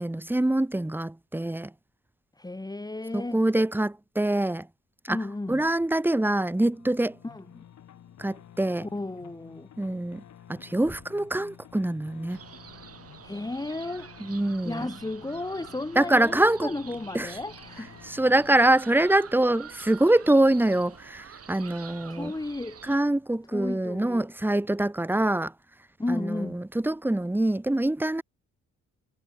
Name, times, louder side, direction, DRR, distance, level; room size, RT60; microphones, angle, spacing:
voice 1, 0.0-1.7 3.1-4.7 5.0-5.2 5.5-7.2 8.2-8.9 9.8-10.2 10.5-12.4 14.2-14.9 15.9-16.7 17.1-17.3 18.0-22.3 22.8-25.5 26.1-28.2, right 1 dB, 5° right, 1.5 m, -24 dB
voice 2, 2.4-3.4 5.1-5.6 7.2-7.6 8.9-9.7 13.2-14.1 14.6-18.0 22.1-22.8 23.5-24.3 26.0-26.6, left 2 dB, 15° left, 2.9 m, -34 dB
sound 1, 6.7-20.8, left 10 dB, 65° left, 3.9 m, -52 dB
sound 2, 12.3-23.0, right 8 dB, 50° right, 4.7 m, -47 dB
cardioid pair, 90°, 30 cm